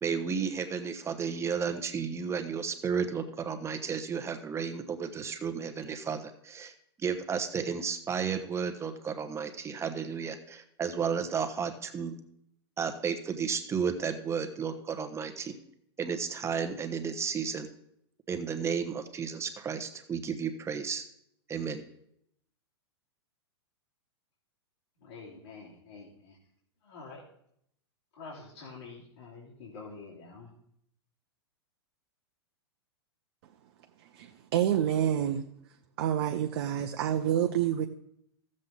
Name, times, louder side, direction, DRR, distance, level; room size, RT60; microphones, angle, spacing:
voice 1, 0.0-6.7 7.0-12.2 12.8-15.5 16.0-17.7 18.3-21.0 21.5-21.8, right 6 dB, 20° right, 8 dB, 1.1 m, -33 dB
voice 2, 25.0-26.4 26.8-27.2 28.2-30.5, left 4 dB, 70° left, -6 dB, 2.9 m, -47 dB
voice 3, 34.1-35.4 36.0-37.9, right 10 dB, 60° right, 5 dB, 0.7 m, -28 dB
14.5 x 7.5 x 4.0 m, 0.73 s
hypercardioid pair, 105°, 14 cm